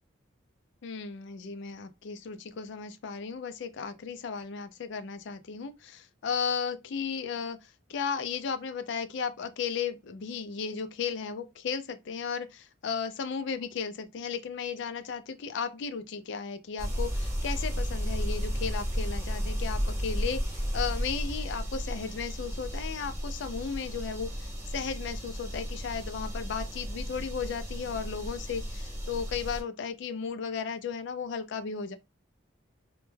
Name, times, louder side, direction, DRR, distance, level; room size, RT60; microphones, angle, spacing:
voice 1, 0.8-32.0, left 6 dB, 60° left, 0.3 m, -35 dB
sound 1, 16.8-29.6, equal, 15° right, 0.5 m, -33 dB
2.1 x 2.1 x 3.1 m
head